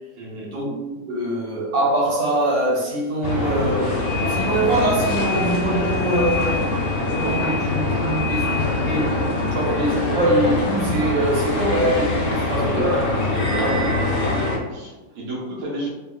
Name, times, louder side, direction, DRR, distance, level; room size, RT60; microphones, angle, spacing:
voice 1, 0.2-0.6 12.6-12.9 13.3-13.8 14.2-15.9, right 2 dB, 55° right, -4 dB, 1.0 m, -32 dB
voice 2, 1.1-3.9 4.3-6.7 7.0-13.1 13.5-13.9, right 1 dB, 80° right, -4 dB, 1.5 m, -23 dB
sound 1, 3.2-14.6, left 2 dB, 60° left, 1.1 m, -23 dB
2.9 x 2.7 x 2.4 m, 1.2 s
omnidirectional pair, 2.0 m